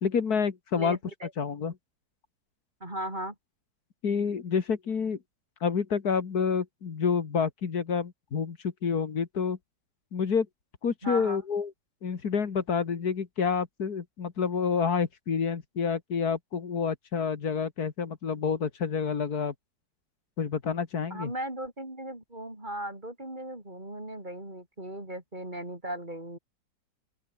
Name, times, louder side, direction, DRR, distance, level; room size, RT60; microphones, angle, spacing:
voice 1, 0.0-1.0 1.4-1.7 4.0-5.2 5.6-9.6 10.1-10.5 10.8-11.7 12.0-19.5 20.4-21.3, left 6 dB, 55° left, 2.2 m, -28 dB
voice 2, 0.7-1.3 2.8-3.3 11.0-11.4 21.1-26.4, right 1 dB, 25° right, 4.5 m, -37 dB
open air
omnidirectional pair, 2.0 m